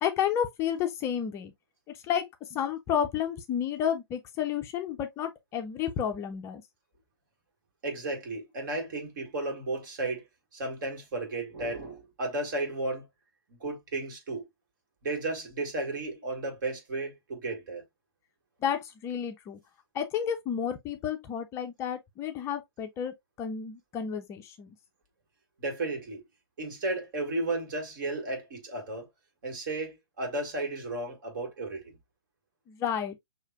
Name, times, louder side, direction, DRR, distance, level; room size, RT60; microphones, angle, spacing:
voice 1, 0.0-1.5 1.9-6.6 18.6-19.6 19.9-24.7 32.7-33.2, left 8 dB, 20° left, 0.5 m, -31 dB
voice 2, 7.8-10.2 10.5-13.1 13.6-14.5 15.0-17.8 25.6-26.2 26.6-29.1 29.4-32.0, right 2 dB, 50° right, 2.2 m, -34 dB
6.4 x 2.7 x 2.3 m
figure-of-eight pair, 120°, 13 cm